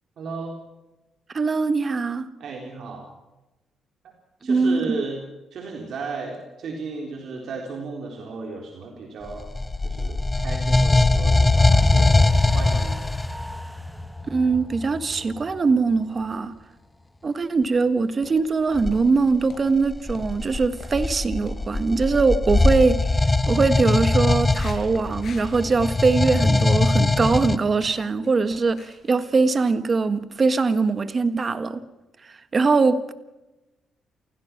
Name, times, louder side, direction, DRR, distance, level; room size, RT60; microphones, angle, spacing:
voice 1, 0.2-0.6 2.4-3.1 4.4-5.2 5.5-9.5 9.8-13.1, right 4 dB, 65° right, 3.9 m, -34 dB
voice 2, 1.3-2.3 4.4-5.0 14.3-16.5 17.2-23.1 23.5-31.8 32.2-33.1, right 4 dB, 35° right, 1.6 m, -22 dB
sound 1, 9.3-13.4 18.7-19.0 19.8-27.6, left 2 dB, 20° left, 1.2 m, -21 dB
sound 2, 11.4-17.8 18.1-18.2, left 1 dB, ahead, 1.1 m, -40 dB
sound 3, 16.1-16.8 17.3-26.8 27.0-30.2 30.4-30.7 31.1-31.2, left 5 dB, 55° left, 5.5 m, -47 dB
28.5 x 17.0 x 6.1 m
cardioid pair, 90°, 0 cm